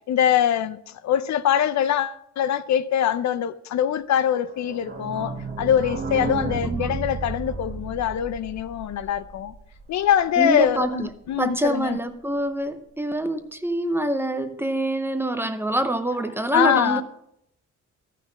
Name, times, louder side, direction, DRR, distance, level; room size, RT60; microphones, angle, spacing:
voice 1, 0.1-9.5 9.9-12.0 16.5-17.0, left 9 dB, 70° left, 0.6 m, -23 dB
sound 1, 4.5-10.0 10.4-10.5 10.6-10.7 11.0-11.1, right 4 dB, 35° right, 1.1 m, -33 dB
voice 2, 6.6-6.9 10.4-11.1 11.4-17.0, right 1 dB, 10° right, 0.6 m, -25 dB
13.5 x 5.9 x 5.9 m
wide cardioid pair, 165°, 29 cm